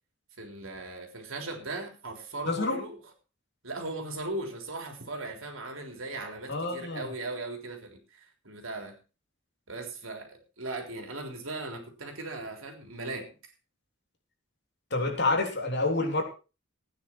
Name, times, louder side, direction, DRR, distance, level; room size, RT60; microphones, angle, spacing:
voice 1, 0.4-3.0 3.6-9.0 9.7-13.3, right 2 dB, 75° right, 4 dB, 3.6 m, -38 dB
voice 2, 2.5-2.8 6.5-7.1 14.9-16.2, left 3 dB, 55° left, 2 dB, 3.4 m, -28 dB
16.0 x 9.5 x 4.5 m, 0.32 s
head